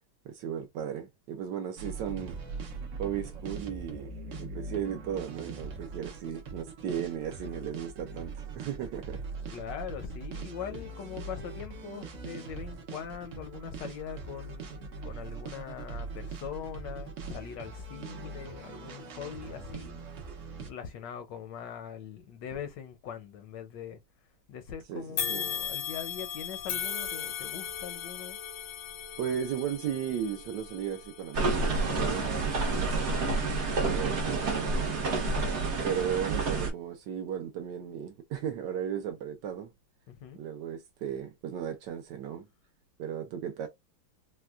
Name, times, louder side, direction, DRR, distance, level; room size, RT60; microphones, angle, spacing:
voice 1, 0.2-2.4 3.0-9.2 24.9-25.0 25.3-25.5 29.2-33.4 33.7-35.4 35.8-39.7 40.4-42.5 43.0-43.7, right 9 dB, 75° right, 1.1 m, -36 dB
sound 1, 1.8-20.7, right 4 dB, 90° right, 0.6 m, -41 dB
voice 2, 9.5-20.1 20.6-24.0 24.5-28.4 40.1-40.4, left 8 dB, 75° left, 1.1 m, -42 dB
sound 2, 25.2-34.5 35.0-35.2 36.1-36.2, left 9 dB, 90° left, 1.7 m, -38 dB
sound 3, 31.3-36.7, right 3 dB, 55° right, 0.8 m, -29 dB
4.2 x 2.2 x 2.3 m
omnidirectional pair, 2.2 m